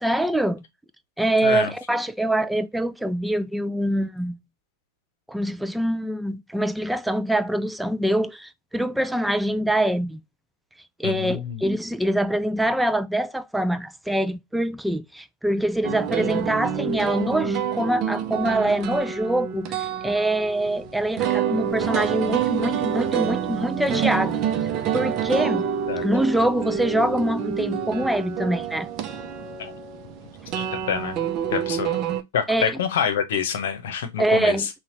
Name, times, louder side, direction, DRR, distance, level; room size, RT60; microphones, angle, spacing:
voice 1, 0.0-0.6 1.2-4.4 5.3-10.2 11.0-24.4 24.9-25.7 26.0-28.9 32.5-32.8 34.2-34.7, right 1 dB, 5° right, 0.4 m, -24 dB
voice 2, 11.0-11.6 25.9-26.1 29.6-29.7 30.5-31.2 31.5-32.0 32.3-34.7, left 7 dB, 60° left, 0.9 m, -27 dB
sound 1, 15.8-32.2, right 8 dB, 40° right, 0.7 m, -27 dB
5.6 x 2.4 x 2.7 m
figure-of-eight pair, 100°, 0 cm